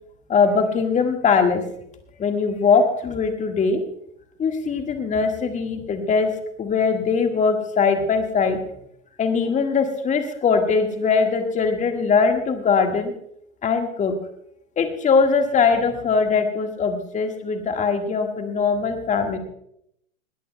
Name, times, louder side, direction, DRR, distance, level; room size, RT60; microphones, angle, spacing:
voice 1, 0.3-1.6 2.2-3.8 4.4-6.3 6.6-8.6 9.2-13.1 13.6-14.1 14.8-19.4, left 5 dB, 20° left, 5 dB, 1.7 m, -21 dB
20.5 x 17.0 x 2.3 m, 0.75 s
hypercardioid pair, 110°, 40 cm